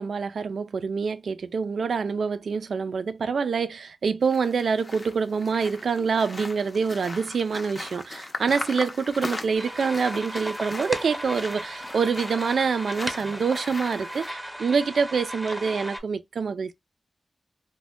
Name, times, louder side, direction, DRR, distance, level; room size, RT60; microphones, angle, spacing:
voice 1, 0.0-16.7, right 5 dB, 80° right, 0.4 m, -26 dB
sound 1, 4.2-14.3, left 2 dB, 35° left, 0.5 m, -39 dB
sound 2, 9.5-16.0, equal, 5° right, 0.8 m, -36 dB
2.6 x 2.2 x 3.4 m
wide cardioid pair, 95°, 0 cm